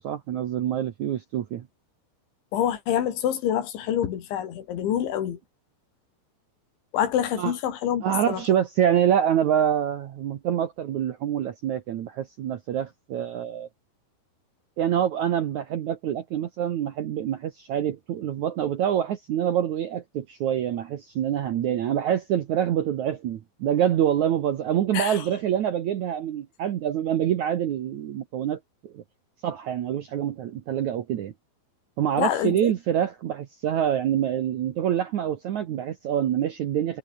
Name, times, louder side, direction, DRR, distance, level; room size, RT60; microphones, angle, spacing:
voice 1, 0.0-1.7 7.4-7.5 8.0-13.7 14.8-29.0 29.4-31.3 32.0-37.0, right 10 dB, 85° right, 1.6 m, -26 dB
voice 2, 2.5-5.4 6.9-8.4 24.9-25.2 32.2-32.7, left 10 dB, 75° left, 4.9 m, -26 dB
omnidirectional pair, 5.4 m